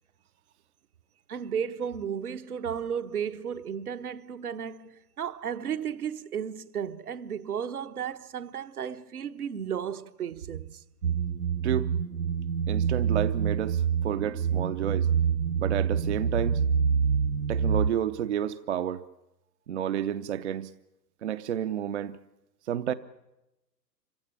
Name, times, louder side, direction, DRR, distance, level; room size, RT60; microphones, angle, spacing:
voice 1, 1.3-10.8, right 8 dB, 60° right, 1.1 m, -34 dB
sound 1, 11.0-17.9, right 6 dB, 80° right, 0.8 m, -26 dB
voice 2, 12.7-15.1 15.6-16.6 17.5-19.0 19.7-20.7 21.2-22.2 22.7-22.9, right 10 dB, 45° right, 0.7 m, -30 dB
27.0 x 16.0 x 8.8 m
figure-of-eight pair, 115°, 50 cm